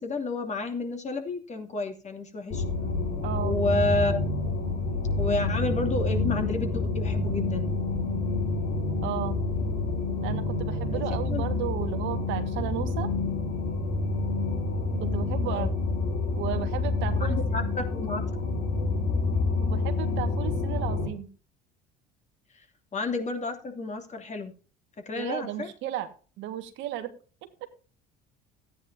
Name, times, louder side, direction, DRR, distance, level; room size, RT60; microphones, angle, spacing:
voice 1, 0.0-2.6 3.4-4.3 5.2-7.7 10.9-11.0 11.3-11.4 15.5-15.7 17.2-18.2 22.9-24.5 25.1-25.7, left 2 dB, 35° left, 4 dB, 2.8 m, -30 dB
sound 1, 2.5-21.1, left 3 dB, 70° left, 3.4 m, -28 dB
voice 2, 3.2-3.5 9.0-9.4 10.2-13.1 15.0-15.7 16.4-17.4 19.6-21.3 25.1-26.1 26.4-27.1, right 12 dB, 65° right, 8 dB, 1.8 m, -34 dB
14.0 x 9.8 x 2.7 m, 0.36 s
hypercardioid pair, 75°, 21 cm